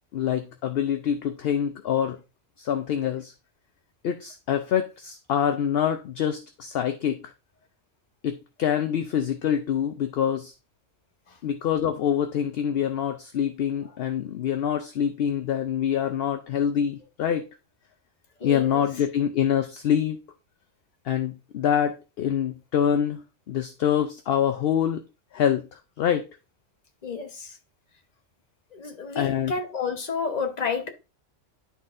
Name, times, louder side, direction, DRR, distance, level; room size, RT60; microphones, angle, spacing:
voice 1, 0.1-2.2 2.6-3.3 4.0-7.3 8.2-10.5 11.4-17.4 18.4-20.2 21.0-25.0 25.3-26.3 29.2-29.5, left 9 dB, 60° left, 0.7 m, -25 dB
voice 2, 18.4-18.9 27.0-27.6 28.7-30.9, left 5 dB, 35° left, 1.0 m, -31 dB
11.0 x 3.9 x 2.5 m
omnidirectional pair, 1.3 m